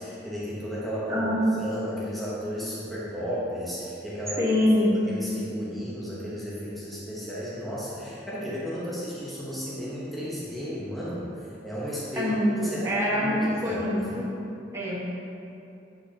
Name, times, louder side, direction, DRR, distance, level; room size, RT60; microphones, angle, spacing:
voice 1, 0.0-1.3 1.6-4.4 4.9-11.3 11.6-12.3 12.7-14.1, equal, ahead, -9 dB, 1.0 m, -34 dB
voice 2, 1.1-1.4 4.4-4.9 12.2-14.3 14.7-15.0, left 1 dB, 15° right, -8 dB, 1.4 m, -25 dB
8.3 x 5.4 x 2.9 m, 2.8 s
head